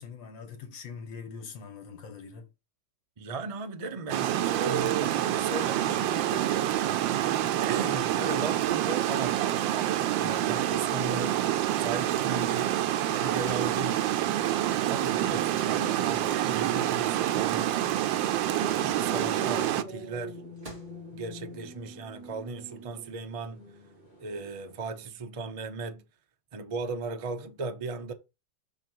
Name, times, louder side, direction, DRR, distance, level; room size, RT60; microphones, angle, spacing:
voice 1, 0.0-2.5, left 5 dB, 80° left, 2.2 m, -43 dB
voice 2, 3.2-6.8 7.6-9.4 10.2-11.4 11.8-12.8 13.2-14.1 14.9-17.8 18.6-20.4 21.1-23.6 24.2-26.0 26.5-28.1, right 3 dB, 60° right, 0.3 m, -36 dB
Water, 4.1-19.8, right 12 dB, 85° right, 1.4 m, -27 dB
sound 1, 18.5-25.1, right 2 dB, 45° left, 3.7 m, -43 dB
Microwave oven, 19.9-21.0, right 2 dB, 20° right, 2.8 m, -53 dB
5.7 x 5.0 x 4.6 m
omnidirectional pair, 2.0 m